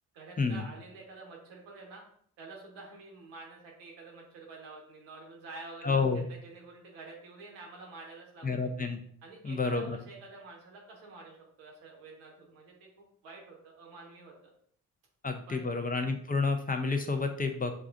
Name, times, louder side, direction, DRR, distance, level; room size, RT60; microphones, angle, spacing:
voice 1, 0.1-2.0 2.4-8.7 9.2-12.9 13.2-14.3 15.5-15.7, right 3 dB, 70° right, -1 dB, 1.4 m, -48 dB
voice 2, 5.8-6.2 8.4-9.0 9.4-10.0 15.2-17.7, left 4 dB, 20° left, 6 dB, 0.7 m, -29 dB
6.8 x 2.4 x 2.5 m, 0.64 s
hypercardioid pair, 40°, 45 cm